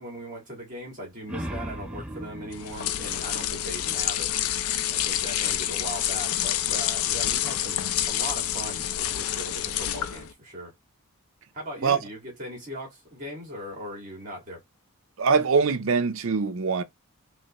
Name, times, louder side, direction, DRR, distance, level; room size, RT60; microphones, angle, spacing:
voice 1, 0.0-4.3 4.9-10.7 11.5-14.6, equal, 35° right, 1.7 m, -39 dB
sound 1, 1.2-4.4, right 1 dB, 5° right, 0.4 m, -38 dB
sound 2, 2.5-10.3, left 11 dB, 75° left, 0.4 m, -28 dB
voice 2, 15.2-16.8, right 5 dB, 65° right, 0.5 m, -23 dB
3.2 x 3.1 x 2.9 m
head